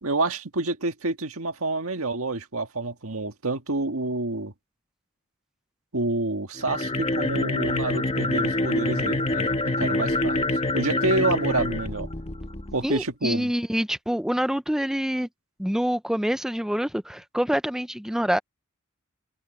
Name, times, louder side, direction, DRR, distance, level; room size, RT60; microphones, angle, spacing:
voice 1, 0.0-4.5 5.9-10.4 10.7-12.1 12.7-13.5, right 2 dB, 80° right, 1.7 m, -28 dB
sound 1, 6.6-12.8, left 2 dB, 30° left, 1.1 m, -26 dB
voice 2, 12.8-15.3 15.6-18.4, equal, 5° right, 0.5 m, -26 dB
head